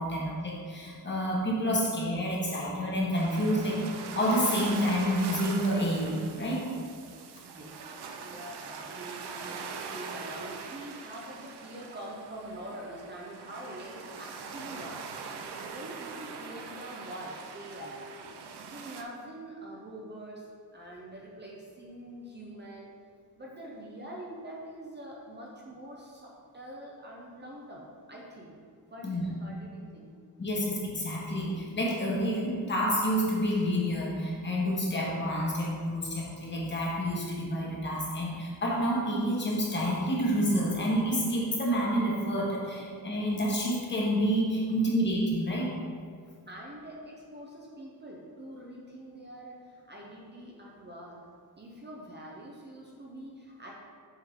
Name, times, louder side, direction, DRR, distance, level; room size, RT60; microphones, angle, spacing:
voice 1, 0.0-6.6 29.0-29.2 30.4-45.7, equal, 30° left, -4 dB, 1.2 m, -29 dB
sound 1, 3.1-19.0, right 5 dB, 85° right, 0.6 m, -42 dB
voice 2, 7.1-7.7 8.2-15.1 15.7-18.0 18.7-20.5 20.7-22.9 23.4-28.5 28.9-30.1 46.2-51.2 51.6-53.7, right 1 dB, 25° right, -3 dB, 0.7 m, -45 dB
7.2 x 3.9 x 3.6 m, 2.2 s
wide cardioid pair, 150°, 39 cm